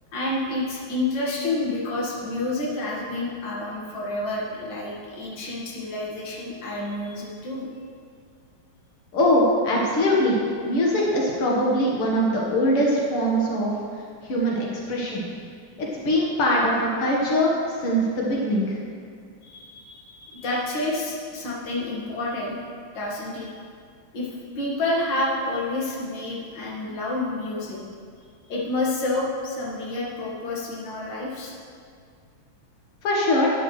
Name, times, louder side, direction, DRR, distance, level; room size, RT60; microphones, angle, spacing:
voice 1, 0.1-7.7 19.4-22.6 22.9-23.5 24.1-24.3 24.6-27.8 28.5-31.5, left 2 dB, 60° left, -4 dB, 2.3 m, -29 dB
voice 2, 9.1-10.4 10.6-13.7 14.2-15.3 15.8-17.5 17.8-18.8 33.0-33.5, equal, 85° left, -4 dB, 2.4 m, -22 dB
11.5 x 9.9 x 3.2 m, 2.2 s
omnidirectional pair, 2.4 m